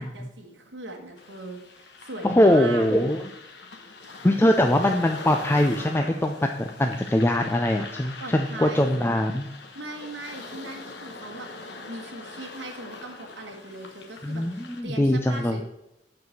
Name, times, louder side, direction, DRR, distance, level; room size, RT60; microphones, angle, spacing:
voice 1, 0.0-2.9 8.2-9.1 9.7-11.5 11.9-15.6, right 2 dB, 75° right, 2 dB, 1.5 m, -39 dB
sound 1, 1.2-14.8, left 3 dB, 70° left, 1.2 m, -42 dB
voice 2, 2.2-3.2 4.2-9.5 14.2-15.6, left 1 dB, 15° left, 4 dB, 0.4 m, -22 dB
8.2 x 4.7 x 6.4 m, 0.88 s
head